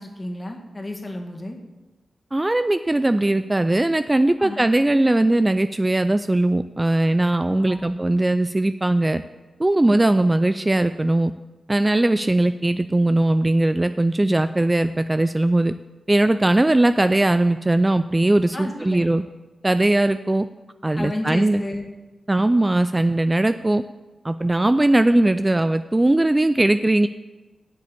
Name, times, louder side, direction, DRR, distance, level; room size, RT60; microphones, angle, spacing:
voice 1, 0.0-1.6 4.4-4.7 7.5-8.0 18.5-19.1 21.0-21.9, left 1 dB, 30° left, 1 dB, 2.0 m, -32 dB
voice 2, 2.3-9.2 9.6-11.3 11.7-15.7 16.1-19.2 19.6-20.5 20.8-21.6 22.3-23.8 24.2-27.1, right 1 dB, 20° right, 10 dB, 0.4 m, -19 dB
8.5 x 7.4 x 8.0 m, 1.2 s
cardioid pair, 60°, 0 cm